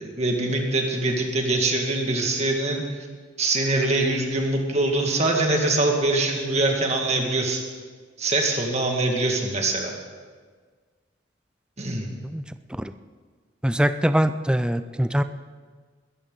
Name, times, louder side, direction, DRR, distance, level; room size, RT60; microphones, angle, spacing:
voice 1, 0.0-2.8 3.4-7.6 8.2-9.9 11.8-12.1, right 2 dB, 35° right, 2 dB, 2.1 m, -23 dB
voice 2, 13.6-15.2, equal, 5° right, 11 dB, 0.5 m, -23 dB
21.5 x 13.5 x 4.0 m, 1.6 s
head